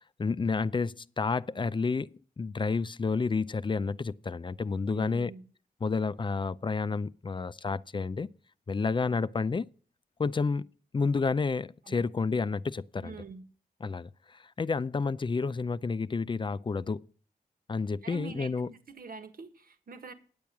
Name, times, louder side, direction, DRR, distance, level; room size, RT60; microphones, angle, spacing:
voice 1, 0.0-5.3 5.8-8.3 8.7-9.7 10.2-10.7 10.9-13.1 13.8-17.0 17.7-18.7, left 4 dB, 30° left, 0.4 m, -30 dB
voice 2, 4.9-5.5 11.9-12.0 13.0-13.4 18.0-20.1, right 4 dB, 70° right, 1.5 m, -45 dB
9.5 x 8.8 x 5.9 m
wide cardioid pair, 90°, 16 cm